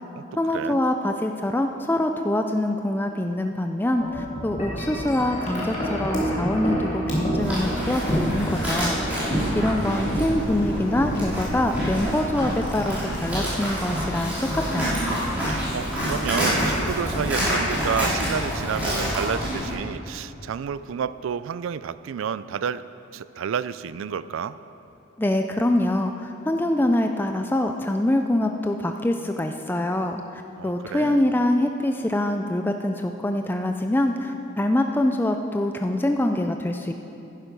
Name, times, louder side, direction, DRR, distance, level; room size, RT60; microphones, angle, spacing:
voice 1, 0.4-9.0 9.6-15.0 25.2-36.9, left 1 dB, 10° left, 5 dB, 0.3 m, -24 dB
Wind chime, 4.0-20.2, equal, 35° left, 2.4 m, -30 dB
Livestock farm animals working animals, 7.4-19.7, equal, 10° right, 3.1 m, -28 dB
voice 2, 15.5-22.8 23.1-24.6 30.6-31.2, right 7 dB, 70° right, 15 dB, 0.3 m, -30 dB
11.0 x 10.0 x 5.2 m, 2.9 s
head